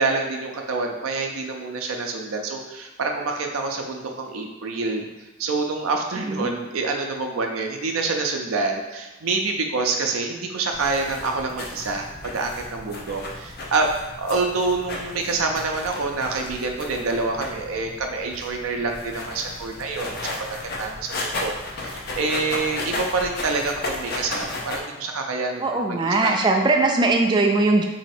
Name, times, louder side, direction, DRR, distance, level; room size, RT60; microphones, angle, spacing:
voice 1, 0.0-5.1 5.4-13.9 14.2-21.1 21.4-26.4, right 3 dB, 90° right, 2 dB, 0.5 m, -27 dB
sound 1, 10.7-24.8, left 2 dB, 50° left, 0.6 m, -34 dB
voice 2, 25.6-27.8, right 2 dB, 20° right, 2 dB, 0.4 m, -20 dB
3.1 x 2.8 x 4.3 m, 1.2 s
head